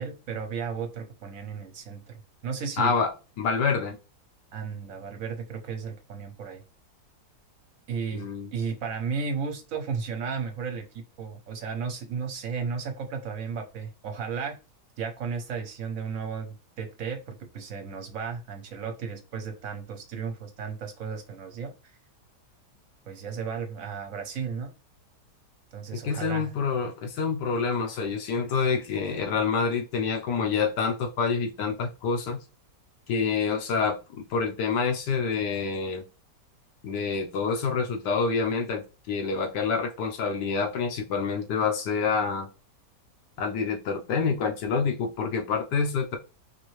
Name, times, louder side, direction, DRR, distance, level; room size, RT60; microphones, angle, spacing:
voice 1, 0.0-2.9 4.5-6.6 7.9-14.6 15.0-21.7 23.1-24.7 25.7-26.5, right 5 dB, 60° right, 5 dB, 1.1 m, -34 dB
voice 2, 2.8-3.1 3.4-4.0 8.1-8.5 25.9-32.4 33.1-34.0 34.3-36.0 36.8-42.5 43.4-46.2, left 5 dB, 90° left, 3 dB, 1.5 m, -27 dB
4.5 x 2.7 x 3.1 m, 0.31 s
omnidirectional pair, 1.8 m